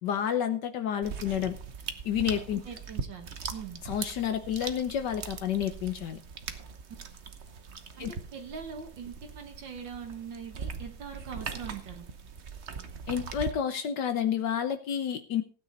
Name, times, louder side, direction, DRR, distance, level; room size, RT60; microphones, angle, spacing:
voice 1, 0.0-1.5 2.0-2.6 3.8-6.2 8.0-8.1 13.1-15.4, left 9 dB, 70° left, 9 dB, 1.6 m, -30 dB
sound 1, 1.0-13.5, right 5 dB, 45° right, 1.2 m, -41 dB
voice 2, 2.6-3.8 8.0-12.1, right 6 dB, 85° right, 3 dB, 2.3 m, -42 dB
16.0 x 9.3 x 4.1 m, 0.38 s
omnidirectional pair, 1.9 m